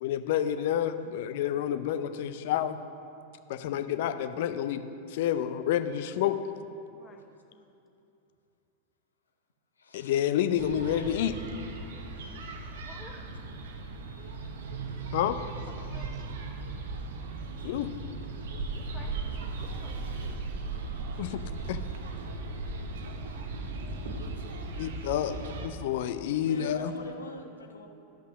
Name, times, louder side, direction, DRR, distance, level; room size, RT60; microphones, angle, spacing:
voice 1, 0.0-2.8 3.5-6.4 9.9-11.4 15.1-15.4 17.6-17.9 21.2-21.4 21.7-21.8 24.7-26.9, left 10 dB, 50° left, 10 dB, 0.5 m, -29 dB
voice 2, 6.9-7.7 12.7-13.2 15.8-16.4 18.7-20.5, left 4 dB, 20° left, 4 dB, 0.8 m, -55 dB
voice 3, 9.8-10.1 25.0-25.2 26.3-27.9, left 3 dB, 70° left, 3 dB, 1.0 m, -44 dB
sound 1, 10.6-25.7, right 3 dB, 60° right, 0.8 m, -37 dB
12.5 x 5.6 x 6.1 m, 2.7 s
figure-of-eight pair, 90°, 0 cm